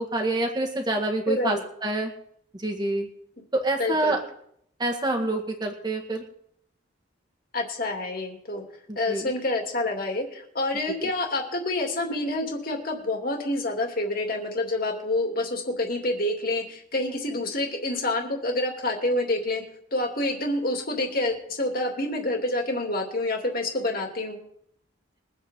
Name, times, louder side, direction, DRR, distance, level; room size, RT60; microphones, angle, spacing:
voice 1, 0.0-2.1 2.6-3.1 3.5-4.2 4.8-6.2 8.9-9.3 11.0-11.1, right 2 dB, 20° right, 2 dB, 1.9 m, -27 dB
voice 2, 1.3-1.6 3.8-4.2 7.5-8.6 9.0-19.6 19.9-24.4, left 2 dB, 45° left, 1 dB, 2.8 m, -27 dB
23.0 x 8.2 x 3.8 m, 0.70 s
head